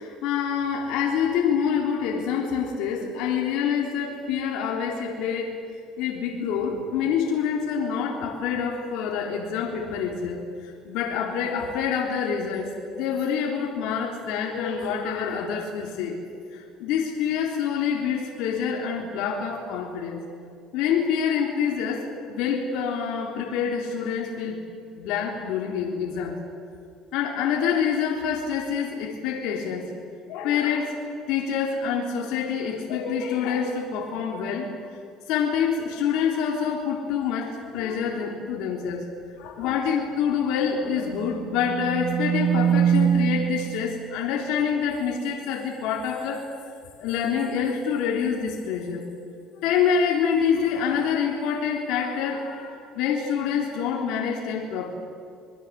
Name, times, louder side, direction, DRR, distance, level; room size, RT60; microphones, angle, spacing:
voice 1, 0.0-5.5 6.0-16.2 16.5-20.2 20.7-24.7 25.0-26.4 27.1-29.9 30.2-31.0 31.3-34.7 35.3-39.1 39.4-46.5 47.0-49.1 49.5-54.9, left 7 dB, 75° left, 0 dB, 3.7 m, -26 dB
sound 1, 41.3-43.9, right 9 dB, 80° right, 3.7 m, -23 dB
26.5 x 22.5 x 7.7 m, 2.5 s
cardioid pair, 120°, 0 cm